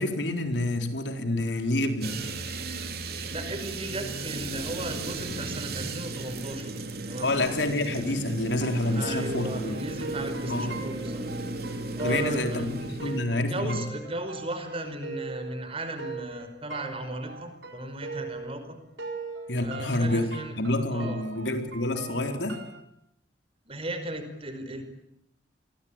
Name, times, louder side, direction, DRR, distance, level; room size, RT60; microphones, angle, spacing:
voice 1, 0.0-2.3 7.2-9.7 10.4-10.7 12.0-13.8 19.5-22.6, left 1 dB, 90° left, 6 dB, 4.1 m, -28 dB
sound 1, 2.0-13.2, right 2 dB, 60° right, 3.5 m, -35 dB
voice 2, 3.3-6.7 7.1-7.3 8.9-11.2 12.0-12.7 13.0-18.8 19.6-20.5 20.9-21.2 23.7-24.8, right 1 dB, 35° right, 8 dB, 5.2 m, -36 dB
sound 2, 8.5-18.7 19.0-22.8, right 4 dB, 80° right, 4.6 m, -40 dB
29.0 x 22.0 x 8.9 m, 0.77 s
head